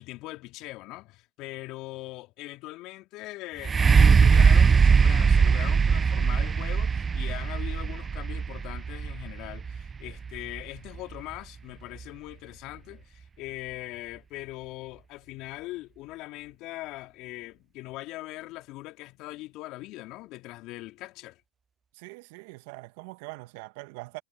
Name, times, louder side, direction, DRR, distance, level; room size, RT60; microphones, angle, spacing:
voice 1, 0.0-21.4, left 19 dB, 50° left, 2.8 m, -41 dB
sound 1, 3.6-11.4 12.0-12.1, right 5 dB, 20° right, 0.3 m, -21 dB
voice 2, 21.9-24.2, right 25 dB, 60° right, 1.5 m, -42 dB
hypercardioid pair, 95°, 0 cm